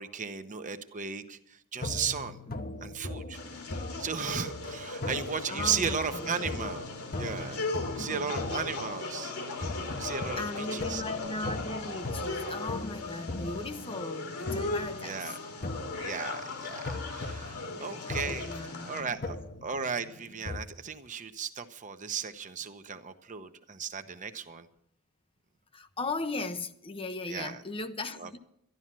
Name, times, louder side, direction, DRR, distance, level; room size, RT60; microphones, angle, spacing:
voice 1, 0.0-2.4 2.8-3.6 4.0-6.9 7.2-11.0 15.0-15.4 16.0-18.5 18.8-24.7 27.3-27.6 28.2-28.3, right 6 dB, 35° right, 0.9 m, -36 dB
sound 1, 1.8-20.6, left 2 dB, 40° left, 1.0 m, -40 dB
voice 2, 2.5-2.8 5.5-6.4 8.0-8.3 10.4-15.2 17.4-19.2 25.7-28.4, left 3 dB, 25° left, 0.7 m, -38 dB
sound 2, 3.3-19.0, left 3 dB, 75° left, 2.5 m, -38 dB
12.5 x 11.5 x 7.5 m
head